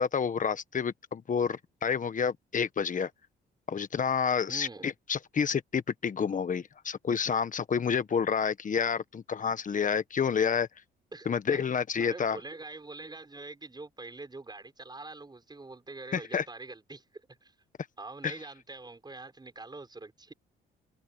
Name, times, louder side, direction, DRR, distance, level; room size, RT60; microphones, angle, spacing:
voice 1, 0.0-3.1 3.7-10.7 11.2-12.4 16.1-16.4 18.2-18.3, left 6 dB, 40° left, 1.3 m, -29 dB
voice 2, 4.5-4.9 11.1-11.6 12.0-17.0 17.4-17.5 18.0-20.3, right 3 dB, 20° right, 6.6 m, -44 dB
cardioid pair, 90°, 20 cm